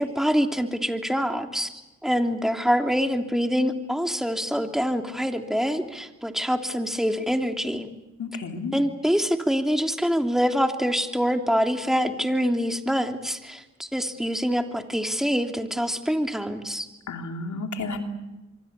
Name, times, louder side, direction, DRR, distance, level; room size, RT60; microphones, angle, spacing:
voice 1, 0.0-1.7 2.0-7.9 8.7-16.9, equal, ahead, 4 dB, 3.2 m, -25 dB
voice 2, 8.2-8.7 17.1-18.0, left 3 dB, 85° left, 4 dB, 3.2 m, -32 dB
26.5 x 24.0 x 8.4 m, 1.0 s
cardioid pair, 60°, 29 cm